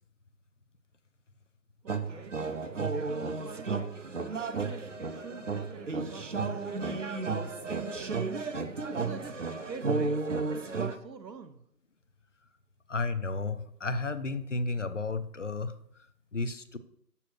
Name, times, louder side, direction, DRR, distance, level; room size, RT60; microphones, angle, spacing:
voice 1, 1.8-2.4 2.8-3.9 4.6-9.4 9.7-10.2 10.5-11.6, right 5 dB, 85° right, 9 dB, 0.9 m, -46 dB
sound 1, 1.9-10.9, right 4 dB, 50° right, 0.7 m, -33 dB
voice 2, 12.9-15.7 16.3-16.8, left 3 dB, 50° left, 11 dB, 0.6 m, -32 dB
7.1 x 6.9 x 4.5 m, 0.69 s
figure-of-eight pair, 160°, 49 cm